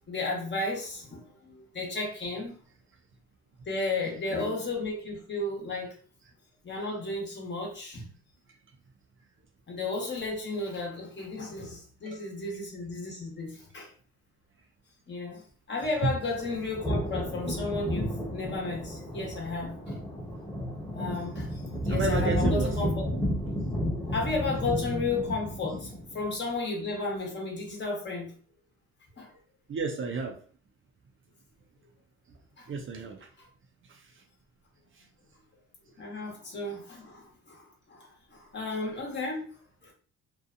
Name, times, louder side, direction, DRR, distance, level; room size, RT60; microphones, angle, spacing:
voice 1, 0.1-2.5 3.7-6.0 6.6-8.1 9.7-13.9 15.1-15.4 15.7-20.0 20.9-23.1 24.1-28.4 29.2-29.4 32.6-32.7 36.0-39.5 39.8-39.9, left 3 dB, 35° left, -1 dB, 1.1 m, -33 dB
sound 1, 15.8-26.2, equal, 10° left, 1.1 m, -32 dB
voice 2, 21.9-22.7 29.7-30.4 32.7-33.3 33.9-34.0, right 4 dB, 40° right, 3 dB, 0.5 m, -31 dB
2.6 x 2.3 x 2.5 m, 0.43 s
cardioid pair, 90°, 30 cm